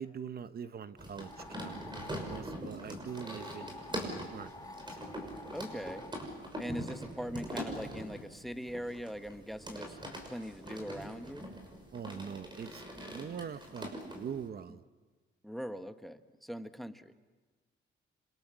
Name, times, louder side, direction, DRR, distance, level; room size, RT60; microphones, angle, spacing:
voice 1, 0.0-1.9 2.3-4.7 11.9-12.8 13.1-14.8, right 7 dB, 45° right, 12 dB, 1.0 m, -43 dB
sound 1, 1.0-14.5, equal, 20° right, 6.2 m, -43 dB
sound 2, 1.2-2.5 3.1-6.2, left 3 dB, 15° left, 1.5 m, -49 dB
voice 2, 5.5-6.1 6.6-10.0 10.3-11.5 15.4-17.1, equal, ahead, 10 dB, 1.2 m, -41 dB
28.0 x 26.0 x 7.5 m, 1.3 s
cardioid pair, 100°, 21 cm